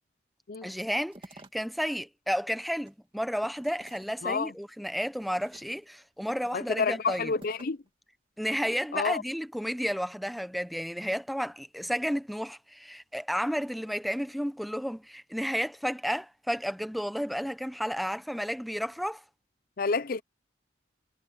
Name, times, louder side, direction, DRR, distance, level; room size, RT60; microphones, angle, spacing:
voice 1, 0.6-7.3 8.4-19.2, equal, ahead, 0.8 m, -32 dB
sound 1, 0.7-1.9 2.3-4.6 5.2-6.0 6.5-7.9, right 2 dB, 30° right, 2.6 m, -53 dB
voice 2, 6.5-7.8 8.9-9.2 19.8-20.2, left 4 dB, 50° left, 0.5 m, -29 dB
head